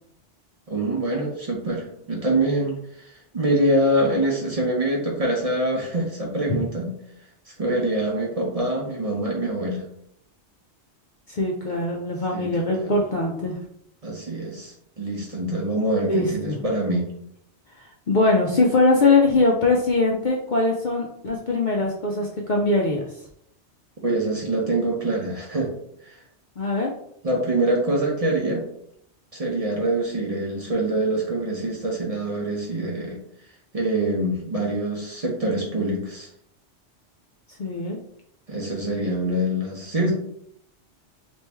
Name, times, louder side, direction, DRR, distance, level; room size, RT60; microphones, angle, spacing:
voice 1, 0.7-6.9 7.5-9.8 12.3-12.9 14.0-17.1 24.0-25.7 26.0-26.2 27.2-28.6 29.3-33.2 33.7-36.3 38.5-40.1, right 1 dB, 40° right, -2 dB, 0.6 m, -25 dB
voice 2, 11.3-13.6 16.0-16.6 17.8-23.0 26.6-26.9 37.6-38.0, left 2 dB, 60° left, -1 dB, 0.5 m, -22 dB
3.1 x 2.6 x 3.3 m, 0.71 s
omnidirectional pair, 1.2 m